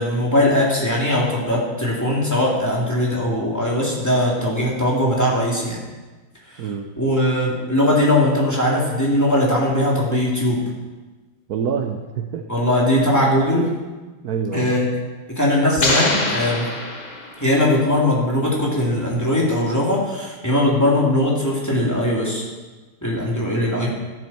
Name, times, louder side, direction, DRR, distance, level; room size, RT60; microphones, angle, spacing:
voice 1, 0.0-5.8 6.5-6.7 7.0-10.6 12.5-13.7 14.5-14.9 15.3-16.7 17.4-22.5 23.0-23.9, left 1 dB, 10° left, -5 dB, 2.8 m, -20 dB
voice 2, 6.6-6.9 11.5-12.5 14.2-14.9 23.7-23.8, right 6 dB, 60° right, 5 dB, 1.1 m, -26 dB
sound 1, 15.8-17.7, left 2 dB, 25° left, 1.1 m, -23 dB
13.5 x 11.0 x 4.4 m, 1.3 s
omnidirectional pair, 2.2 m